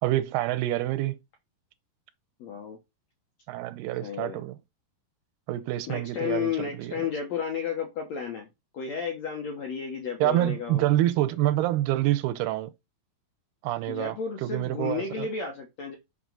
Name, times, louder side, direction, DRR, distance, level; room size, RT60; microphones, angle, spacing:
voice 1, 0.0-1.2 3.5-4.6 5.5-6.5 6.8-7.1 10.2-12.7 13.6-15.3, right 15 dB, 85° right, 2.6 m, -27 dB
voice 2, 2.4-2.8 4.0-4.4 5.9-8.5 8.7-10.9 13.9-16.0, left 7 dB, 75° left, 1.6 m, -32 dB
6.1 x 5.8 x 3.9 m
omnidirectional pair, 4.7 m